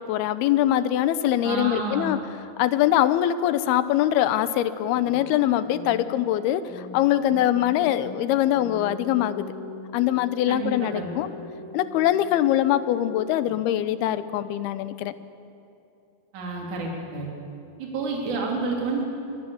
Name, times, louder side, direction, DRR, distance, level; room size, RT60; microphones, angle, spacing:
voice 1, 0.1-2.2 2.6-9.5 9.9-11.3 11.7-15.1, left 12 dB, 85° left, 13 dB, 2.8 m, -23 dB
voice 2, 1.4-2.1 10.5-11.1 16.3-17.3 17.8-19.0, right 3 dB, 55° right, -1 dB, 4.5 m, -29 dB
sound 1, 4.9-13.9, left 4 dB, 40° left, 2.5 m, -41 dB
26.0 x 21.5 x 7.2 m, 2.7 s
omnidirectional pair, 4.4 m